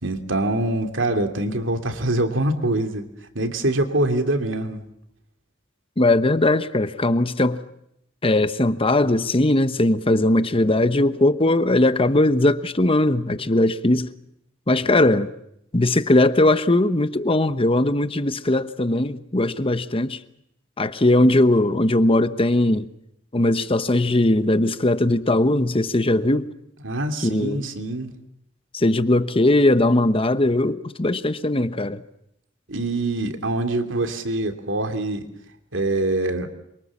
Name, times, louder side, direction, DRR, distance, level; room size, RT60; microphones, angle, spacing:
voice 1, 0.0-3.1 3.3-4.8 14.8-15.0 26.8-28.1 32.7-35.2 35.7-36.5, right 2 dB, 70° right, 2.9 m, -24 dB
voice 2, 6.0-7.6 8.2-14.1 14.7-15.3 15.7-20.2 20.8-22.9 23.3-26.5 27.2-27.7 28.7-32.0, left 1 dB, 30° left, 1.0 m, -19 dB
27.5 x 24.0 x 7.3 m
head